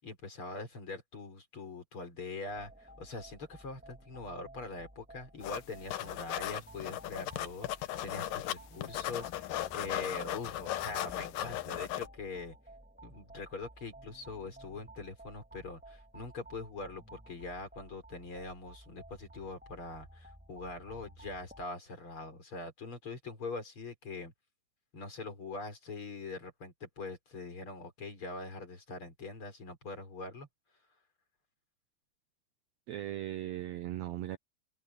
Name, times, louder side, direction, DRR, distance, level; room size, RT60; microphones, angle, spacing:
voice 1, 0.0-12.6 13.0-24.3 24.9-30.5, left 3 dB, 35° left, 4.9 m, -43 dB
sound 1, 2.5-21.7, right 1 dB, 5° right, 1.4 m, -54 dB
sound 2, 5.4-5.6 5.9-8.6 8.8-12.1, left 13 dB, 70° left, 2.5 m, -37 dB
voice 2, 32.9-34.4, right 13 dB, 80° right, 1.5 m, -38 dB
omnidirectional pair, 4.2 m